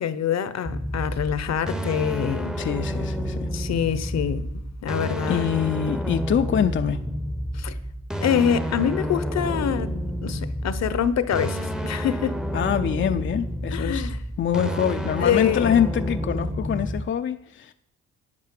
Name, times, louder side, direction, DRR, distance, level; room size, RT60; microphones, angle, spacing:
voice 1, 0.0-2.6 3.5-5.5 7.5-7.8 8.2-9.9 10.2-12.4 13.7-14.2 15.2-15.7, left 8 dB, 60° left, 0.9 m, -25 dB
sound 1, 0.6-17.0, equal, ahead, 0.8 m, -29 dB
voice 2, 2.6-3.5 5.3-7.0 12.5-14.1 14.4-17.7, left 8 dB, 40° left, 0.6 m, -25 dB
10.5 x 8.5 x 7.6 m
cardioid pair, 90°, 30 cm